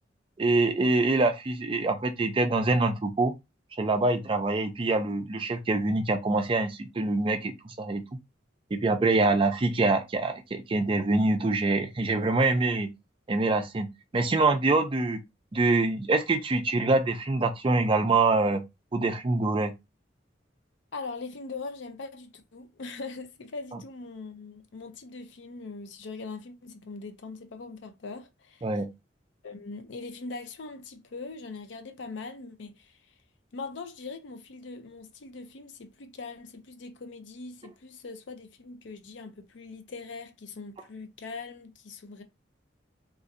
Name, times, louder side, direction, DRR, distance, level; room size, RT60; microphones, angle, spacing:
voice 1, 0.4-3.3 3.8-8.0 8.7-12.9 13.3-13.9 14.1-15.2 15.5-18.6 18.9-19.7 23.7-23.8 28.6-28.9, right 3 dB, 30° right, 0.4 m, -25 dB
voice 2, 20.9-28.7 29.4-33.0 33.5-42.2, left 3 dB, 70° left, 0.5 m, -41 dB
3.1 x 2.6 x 2.5 m
head